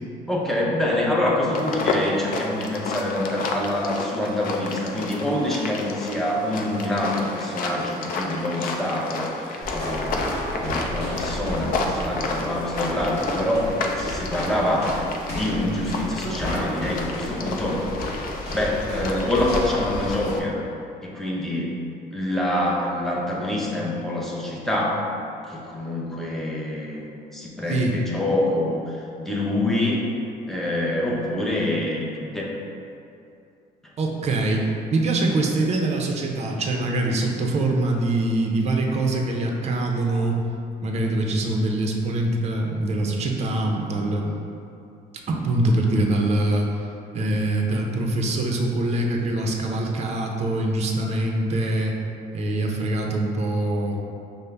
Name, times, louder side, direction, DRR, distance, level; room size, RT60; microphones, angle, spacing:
voice 1, 0.3-17.8 18.5-20.6 21.0-21.8 22.1-25.1 25.5-30.1 30.5-32.5, left 1 dB, ahead, -4 dB, 0.6 m, -26 dB
sound 1, 1.5-20.4, left 3 dB, 60° left, 0.4 m, -31 dB
sound 2, 9.6-20.4, equal, 40° left, 1.2 m, -33 dB
voice 2, 34.0-40.4 40.8-44.3 45.3-46.7 47.1-51.9 52.3-54.0, right 2 dB, 40° right, 1 dB, 0.5 m, -24 dB
5.3 x 2.0 x 3.3 m, 2.6 s
cardioid pair, 110°, 17 cm